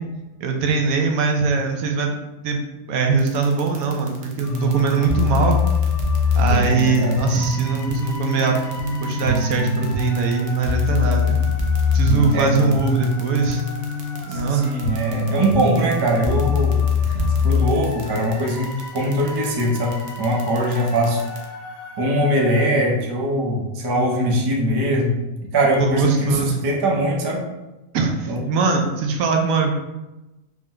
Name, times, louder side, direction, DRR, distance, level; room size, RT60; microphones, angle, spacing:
voice 1, 0.4-2.2 2.4-2.6 2.9-5.6 6.3-8.6 9.0-11.5 11.9-13.6 14.3-14.7 17.1-17.3 23.9-24.1 25.8-26.6 27.9-29.7, right 4 dB, 85° right, 3 dB, 1.1 m, -21 dB
sound 1, 3.2-21.4, right 6 dB, 55° right, 0.8 m, -42 dB
sound 2, 4.4-22.6, left 3 dB, 85° left, 1.3 m, -23 dB
voice 2, 6.5-7.2 12.3-12.5 14.3-16.8 17.4-21.2 22.0-25.2 25.5-27.4 28.3-28.4, equal, 40° right, -1 dB, 0.3 m, -22 dB
4.7 x 2.2 x 3.6 m, 1.0 s
omnidirectional pair, 1.5 m